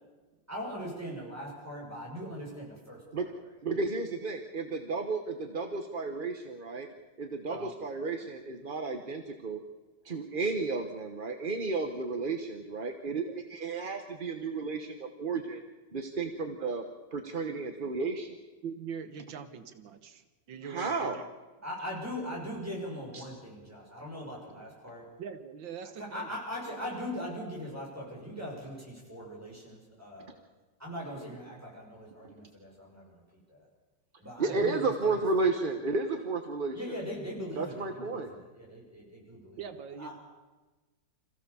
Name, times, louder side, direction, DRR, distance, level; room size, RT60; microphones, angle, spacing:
voice 1, 0.5-3.3 21.6-25.1 26.0-30.3 30.8-33.2 33.5-33.7 34.2-35.5 36.7-39.6 40.0-40.2, equal, 10° right, -3 dB, 6.4 m, -40 dB
voice 2, 3.6-6.9 7.2-9.6 10.0-13.2 13.5-15.6 15.9-16.8 17.1-18.4 20.7-21.2 23.1-23.3 34.4-37.0 37.6-38.3, right 3 dB, 35° right, 6 dB, 1.0 m, -32 dB
voice 3, 18.6-21.3 25.2-26.3 31.2-31.4 34.4-34.6 39.6-40.1, right 7 dB, 85° right, 10 dB, 1.9 m, -42 dB
26.5 x 15.5 x 7.0 m, 1.2 s
omnidirectional pair, 2.0 m